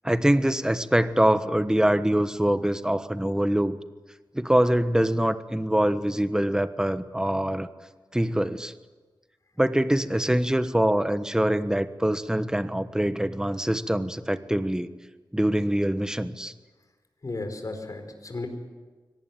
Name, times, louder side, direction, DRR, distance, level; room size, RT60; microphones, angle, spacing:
voice 1, 0.0-3.8 4.3-7.7 8.1-8.7 9.6-14.9 15.3-16.5, right 1 dB, 10° right, 11 dB, 1.3 m, -24 dB
voice 2, 17.2-18.5, left 2 dB, 45° left, 6 dB, 4.7 m, -34 dB
23.5 x 19.0 x 9.4 m, 1.3 s
wide cardioid pair, 70°, 8 cm